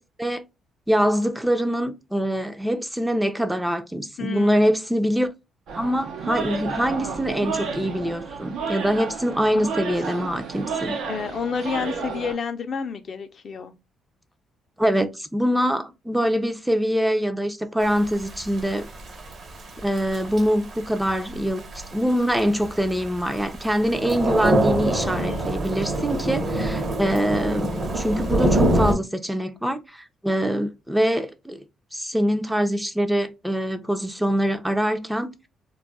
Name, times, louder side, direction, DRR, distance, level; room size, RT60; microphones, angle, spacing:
voice 1, 0.9-5.3 5.7-10.9 14.8-18.9 19.8-21.6 21.9-31.6 31.9-35.3, equal, 5° right, 0.4 m, -24 dB
voice 2, 4.2-4.6 10.2-10.3 11.1-13.7 25.1-25.6, left 6 dB, 50° left, 0.4 m, -30 dB
sound 1, 5.7-12.3, right 5 dB, 80° right, 0.6 m, -31 dB
Thunder / Rain, 17.8-28.9, right 1 dB, 45° right, 0.8 m, -26 dB
2.3 x 2.1 x 3.8 m
cardioid pair, 90°, 0 cm